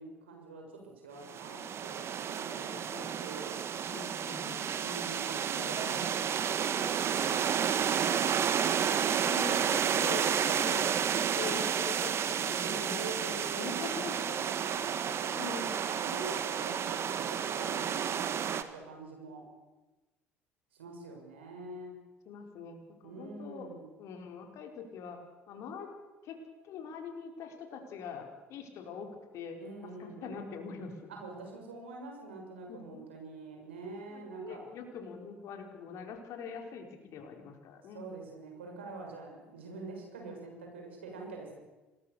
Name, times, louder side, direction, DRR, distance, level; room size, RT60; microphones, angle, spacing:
voice 1, 0.0-3.6 4.8-8.2 12.6-15.5 15.8-19.4 20.7-22.0 23.0-23.9 29.6-30.4 31.1-34.6 37.9-41.6, right 3 dB, 80° right, 2 dB, 6.5 m, -45 dB
sound 1, 1.2-18.6, right 8 dB, 45° right, 1.8 m, -31 dB
voice 2, 2.6-3.2 3.9-4.6 5.5-6.0 7.3-7.8 9.2-14.2 15.3-15.8 22.3-23.7 24.0-26.0 26.2-29.6 30.0-31.1 32.7-33.0 34.1-38.1, left 5 dB, 55° left, 3 dB, 4.8 m, -43 dB
27.0 x 20.5 x 6.9 m, 1.2 s
figure-of-eight pair, 60°, 6 cm